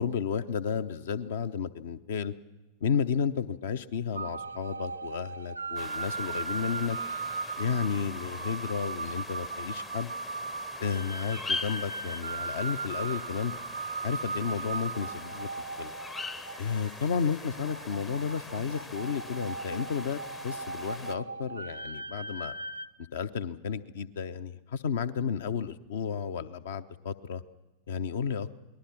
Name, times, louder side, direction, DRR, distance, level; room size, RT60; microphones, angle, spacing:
voice 1, 0.0-2.3 2.8-7.0 7.6-10.1 10.8-13.5 14.0-15.5 15.8-15.9 16.6-22.5 23.1-27.4 27.9-28.5, left 6 dB, 60° left, 14 dB, 0.8 m, -32 dB
sound 1, 4.2-22.9, right 3 dB, 80° right, 0.6 m, -38 dB
sound 2, 5.8-21.2, left 3 dB, 15° left, 0.7 m, -43 dB
28.0 x 19.5 x 6.1 m, 1.1 s
figure-of-eight pair, 90°, 0 cm